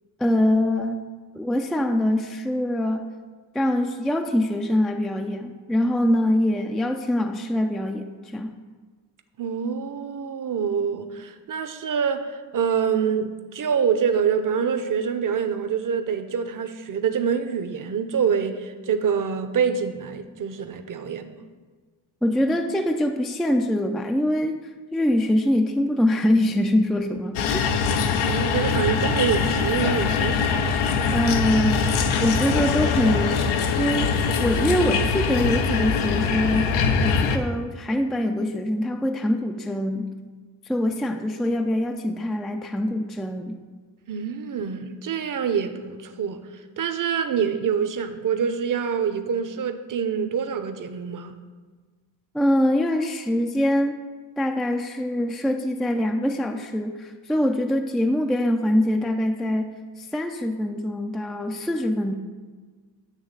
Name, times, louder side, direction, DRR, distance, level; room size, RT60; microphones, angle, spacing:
voice 1, 0.2-1.0 1.3-3.1 3.5-8.5 22.2-27.7 31.1-31.9 32.2-33.5 33.8-36.7 37.0-40.1 40.6-43.6 52.3-54.0 54.4-62.1, left 1 dB, ahead, 5 dB, 0.3 m, -24 dB
voice 2, 9.4-21.4 28.2-30.4 44.1-51.4, right 7 dB, 40° right, 9 dB, 0.8 m, -26 dB
sound 1, 27.4-37.4, left 5 dB, 80° left, 0.7 m, -23 dB
9.2 x 3.1 x 6.6 m, 1.4 s
supercardioid pair, 65°, 49 cm